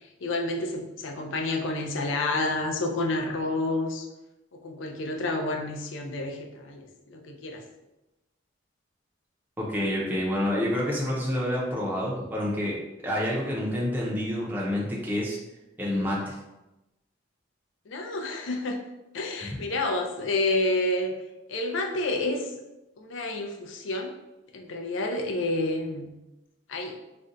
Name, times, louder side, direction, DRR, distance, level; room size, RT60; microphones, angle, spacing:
voice 1, 0.2-4.1 4.6-7.6 17.9-18.8 19.1-21.1 21.5-22.5 23.0-24.1 24.5-26.1 26.7-27.0, left 2 dB, 80° left, 3 dB, 0.4 m, -29 dB
voice 2, 9.6-12.7 13.0-15.4 15.8-16.3 19.4-19.5, left 1 dB, 10° right, -5 dB, 0.5 m, -28 dB
2.6 x 2.2 x 3.7 m, 0.98 s
head